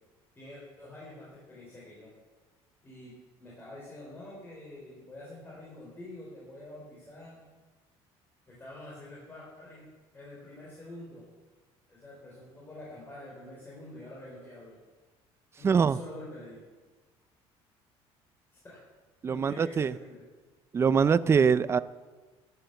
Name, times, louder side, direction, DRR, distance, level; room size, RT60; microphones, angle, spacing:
voice 1, 0.3-2.1 2.8-3.1 3.4-7.4 8.5-11.3 11.9-14.8 15.6-16.6 18.5-18.9 19.3-20.2, left 1 dB, 20° left, -6 dB, 4.4 m, -47 dB
voice 2, 15.6-16.0 19.2-19.9 20.7-21.8, right 6 dB, 25° right, 16 dB, 0.4 m, -23 dB
13.0 x 10.5 x 6.9 m, 1.3 s
cardioid pair, 135°, 11 cm